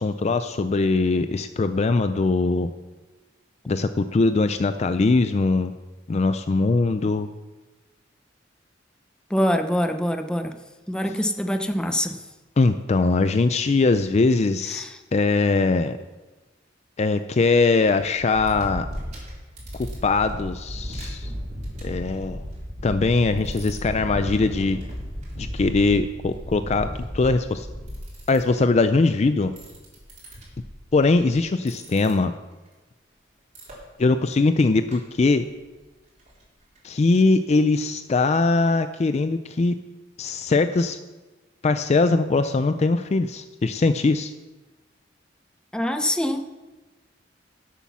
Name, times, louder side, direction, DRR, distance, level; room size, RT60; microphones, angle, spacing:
voice 1, 0.0-2.7 3.7-5.7 6.1-7.3 12.6-14.8 15.1-16.0 17.0-18.9 20.0-21.3 21.8-22.4 22.8-24.8 25.4-27.7 28.3-29.5 30.9-32.3 34.0-35.4 36.8-39.8 40.2-41.0 41.6-44.3, left 3 dB, 35° left, 10 dB, 0.4 m, -21 dB
voice 2, 9.3-10.5 10.9-12.2 14.7-15.0 45.7-46.4, equal, 5° left, 6 dB, 0.7 m, -24 dB
sound 1, 17.8-28.7 29.4-31.4 31.7-32.1 33.5-33.7 34.3-34.5 34.9-35.0 35.2-35.3 35.7-35.8 36.2-36.3 36.8-36.9, equal, 40° right, 4.0 m, -34 dB
11.5 x 8.3 x 6.1 m, 1.2 s
head